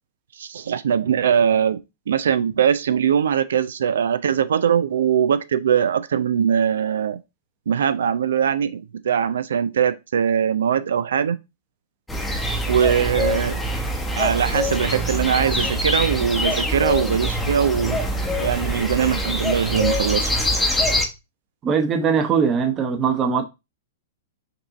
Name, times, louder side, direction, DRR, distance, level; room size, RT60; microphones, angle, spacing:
voice 1, 0.4-1.8 2.1-7.2 7.7-11.4 12.7-13.6 14.2-18.0 18.4-20.3, right 8 dB, 75° right, 0.3 m, -21 dB
sound 1, 12.1-21.1, equal, 5° left, 0.8 m, -24 dB
voice 2, 21.6-23.4, right 6 dB, 25° right, 0.9 m, -20 dB
5.3 x 2.6 x 3.8 m
hypercardioid pair, 120°, 0 cm